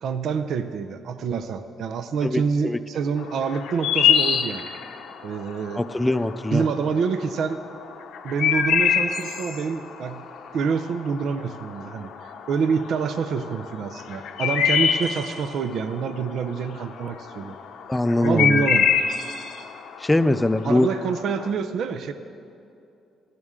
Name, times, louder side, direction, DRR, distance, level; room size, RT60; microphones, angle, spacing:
voice 1, 0.0-4.7 5.2-5.8 6.5-7.6 8.2-10.2 10.5-17.6 18.2-18.9 20.6-22.1, right 5 dB, 70° right, 10 dB, 0.6 m, -27 dB
voice 2, 2.2-2.8 5.8-6.6 17.9-18.7 20.0-20.9, left 1 dB, 10° left, 12 dB, 0.5 m, -22 dB
sound 1, 3.2-21.5, left 7 dB, 80° left, 0.9 m, -25 dB
17.0 x 13.0 x 3.7 m, 2.7 s
cardioid pair, 90°, 0 cm